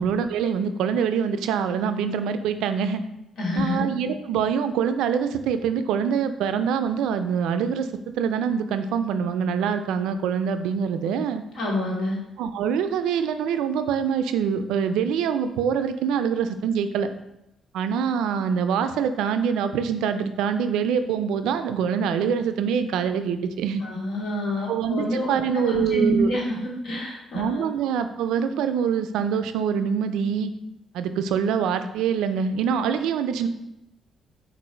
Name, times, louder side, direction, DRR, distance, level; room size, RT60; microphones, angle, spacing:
voice 1, 0.0-3.0 3.6-7.9 8.2-11.4 12.4-17.1 17.7-23.8 24.7-26.3 27.3-30.5 30.9-33.5, right 7 dB, 90° right, 10 dB, 0.3 m, -24 dB
voice 2, 3.4-3.8 11.5-12.2 23.8-27.7, left 1 dB, 65° left, -3 dB, 1.4 m, -27 dB
4.5 x 2.4 x 4.2 m, 0.89 s
cardioid pair, 90°, 0 cm